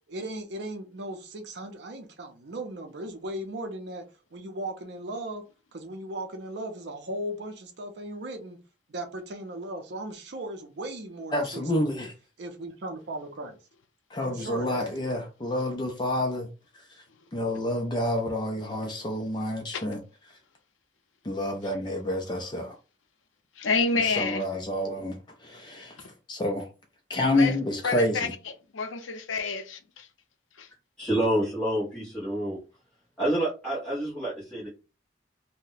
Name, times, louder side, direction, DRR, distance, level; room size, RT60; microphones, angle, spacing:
voice 1, 0.1-4.1 4.3-5.4 5.7-8.6 8.9-12.1 12.4-13.6 14.2-14.9, right 1 dB, 60° right, 0.5 m, -37 dB
voice 2, 11.3-12.1 14.1-16.5 17.3-20.0 21.2-22.7 24.2-25.2 25.4-25.9 26.3-26.7 27.1-28.3, left 1 dB, 25° left, 0.4 m, -28 dB
voice 3, 23.6-24.5 26.0-26.1 27.3-27.6 27.8-30.1 30.6-30.7, left 4 dB, 85° left, 0.6 m, -29 dB
voice 4, 31.0-32.6 33.2-34.7, right 1 dB, 5° left, 1.2 m, -28 dB
2.7 x 2.1 x 3.9 m
head